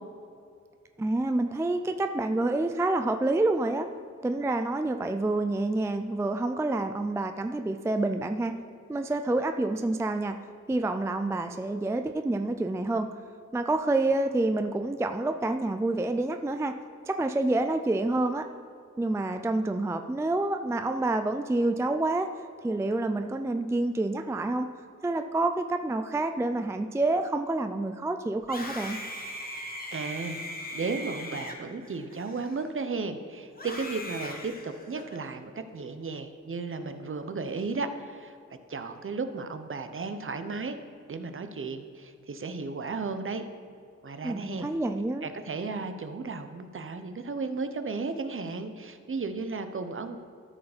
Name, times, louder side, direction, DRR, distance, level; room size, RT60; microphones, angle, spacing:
voice 1, 1.0-3.9 4.2-8.5 8.9-10.4 10.7-13.1 13.5-16.8 17.1-18.5 19.0-22.3 22.6-24.7 25.0-29.0 44.2-45.3, right 2 dB, 10° right, 7 dB, 0.4 m, -28 dB
Screaming, 28.4-32.9 33.5-35.3, left 1 dB, 30° left, 1.3 m, -40 dB
voice 2, 29.9-30.4 30.7-38.4 38.7-40.8 41.1-43.4 44.0-44.7 45.2-50.2, right 4 dB, 45° right, 8 dB, 0.7 m, -34 dB
13.0 x 4.8 x 5.0 m, 2.4 s
cardioid pair, 70°, 30 cm